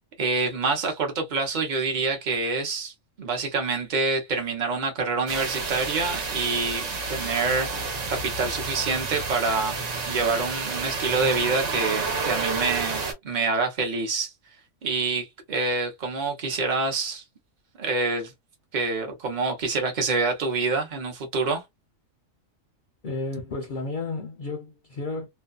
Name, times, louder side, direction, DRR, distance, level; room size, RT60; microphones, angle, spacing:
voice 1, 0.2-9.8 10.1-14.3 14.8-17.2 17.8-18.3 18.7-21.6, right 4 dB, 40° right, 0.8 m, -27 dB
sound 1, 5.3-13.1, right 4 dB, 65° right, 1.1 m, -30 dB
voice 2, 23.0-25.3, left 3 dB, 50° left, 0.6 m, -32 dB
2.6 x 2.2 x 2.3 m
omnidirectional pair, 1.4 m